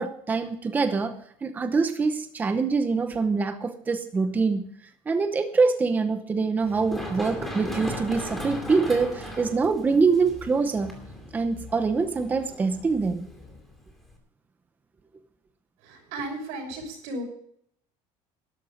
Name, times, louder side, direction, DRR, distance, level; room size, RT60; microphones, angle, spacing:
voice 1, 0.0-4.6 5.1-10.9 11.3-13.3, right 4 dB, 15° right, 8 dB, 0.8 m, -24 dB
Run, 6.6-14.2, left 1 dB, ahead, 2.5 m, -38 dB
voice 2, 15.8-17.2, right 1 dB, 85° right, 2 dB, 6.2 m, -35 dB
12.5 x 11.5 x 5.1 m, 0.67 s
cardioid pair, 170°, 12 cm